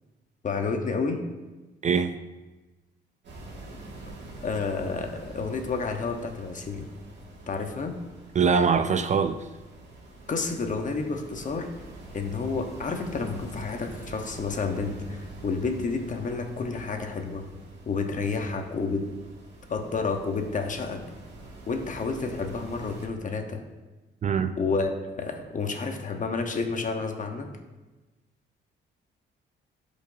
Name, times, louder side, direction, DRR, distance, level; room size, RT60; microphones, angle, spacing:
voice 1, 0.4-1.2 4.4-6.9 7.5-8.0 10.3-11.7 12.1-17.5 17.9-19.0 19.7-21.0 21.7-23.6 24.6-27.5, left 4 dB, 40° left, 1.0 m, -30 dB
voice 2, 1.8-2.2 8.3-9.5 24.2-24.6, right 6 dB, 35° right, 0.4 m, -23 dB
sound 1, 3.2-23.1, right 2 dB, 65° right, 2.1 m, -45 dB
11.0 x 5.2 x 2.7 m
cardioid pair, 90°, 20 cm